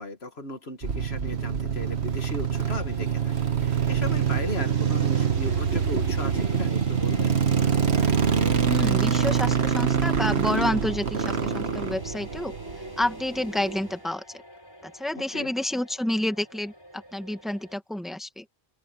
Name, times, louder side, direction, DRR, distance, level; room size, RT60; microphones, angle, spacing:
voice 1, 0.0-3.3 3.6-7.4 15.1-15.5, left 2 dB, 75° left, 2.2 m, -36 dB
sound 1, 0.8-13.1, right 7 dB, 85° right, 1.7 m, -25 dB
sound 2, 2.5-17.8, left 1 dB, 20° left, 6.8 m, -50 dB
sound 3, 3.7-14.1, right 2 dB, 20° right, 2.1 m, -41 dB
voice 2, 8.7-12.5 13.0-14.2 14.9-16.7 17.1-18.4, left 1 dB, ahead, 1.7 m, -29 dB
open air
omnidirectional pair, 1.1 m